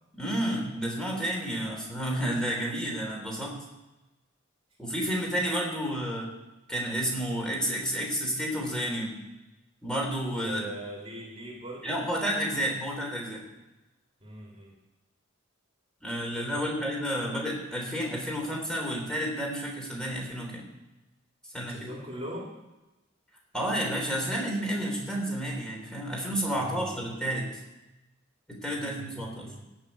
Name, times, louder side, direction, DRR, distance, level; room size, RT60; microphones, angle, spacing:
voice 1, 0.1-3.6 4.8-6.3 6.7-9.2 9.8-10.7 11.8-13.4 16.0-20.7 21.5-21.9 23.5-27.5 28.5-29.5, equal, 5° left, -1 dB, 3.5 m, -31 dB
voice 2, 10.4-12.0 14.2-14.8 16.5-16.6 17.2-17.4 21.7-22.5 26.5-27.0 28.8-29.7, right 1 dB, 30° right, -2 dB, 2.5 m, -41 dB
16.5 x 6.1 x 8.2 m, 1.0 s
head